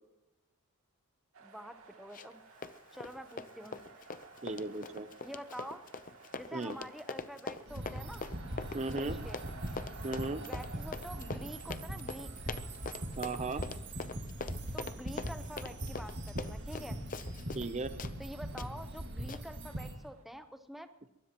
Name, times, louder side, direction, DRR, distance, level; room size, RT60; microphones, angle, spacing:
sound 1, 1.3-20.2, right 4 dB, 75° right, 2.6 m, -56 dB
voice 1, 1.4-2.4 2.9-3.8 5.2-5.8 6.4-8.2 8.8-9.4 10.4-12.3 14.7-17.0 18.2-20.9, equal, ahead, 8 dB, 0.8 m, -47 dB
Run, 2.1-2.4 2.6-17.7 18.0-18.1 18.6-18.7 19.3-19.4, left 4 dB, 35° left, 0.7 m, -43 dB
voice 2, 4.4-5.1 6.5-6.8 8.7-9.2 10.0-10.4 13.2-13.6 17.5-17.9, right 3 dB, 30° right, 10 dB, 0.6 m, -36 dB
Skyrim Healing, 7.7-19.9, right 1 dB, 50° right, 2.3 m, -41 dB
23.5 x 20.5 x 3.0 m, 1.0 s
head